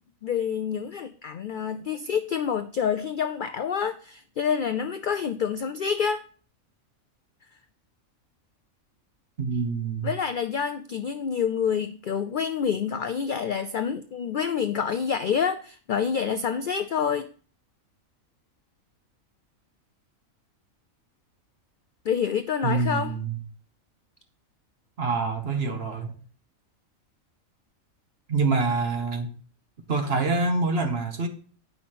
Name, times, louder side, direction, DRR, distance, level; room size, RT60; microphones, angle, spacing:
voice 1, 0.2-6.2 10.0-17.3 22.0-23.2, left 7 dB, 75° left, 9 dB, 0.4 m, -27 dB
voice 2, 9.4-10.1 22.6-23.4 25.0-26.1 28.3-29.3 29.9-31.3, right 4 dB, 50° right, 6 dB, 1.2 m, -26 dB
8.9 x 5.6 x 4.2 m, 0.43 s
omnidirectional pair, 1.4 m